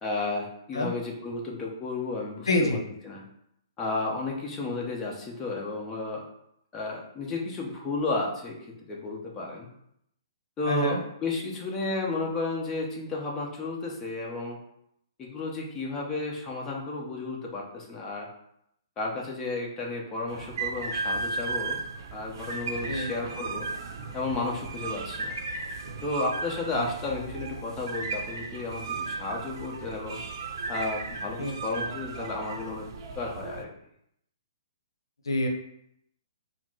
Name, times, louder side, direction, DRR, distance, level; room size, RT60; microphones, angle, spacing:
voice 1, 0.0-2.8 3.0-3.2 3.8-6.2 6.7-8.6 8.9-9.7 10.6-14.6 15.2-18.3 19.0-21.8 22.1-23.7 24.1-25.4 26.0-30.2 30.7-32.9 33.1-33.7, left 3 dB, 20° left, -2 dB, 0.9 m, -32 dB
voice 2, 2.5-2.8 10.7-11.0 22.9-23.1 26.7-26.9 31.4-31.6 35.3-35.5, left 1 dB, 85° left, 2 dB, 0.8 m, -26 dB
sound 1, 20.3-33.6, right 4 dB, 55° right, 0.6 m, -35 dB
4.7 x 2.1 x 3.7 m, 0.74 s
hypercardioid pair, 135°, 2 cm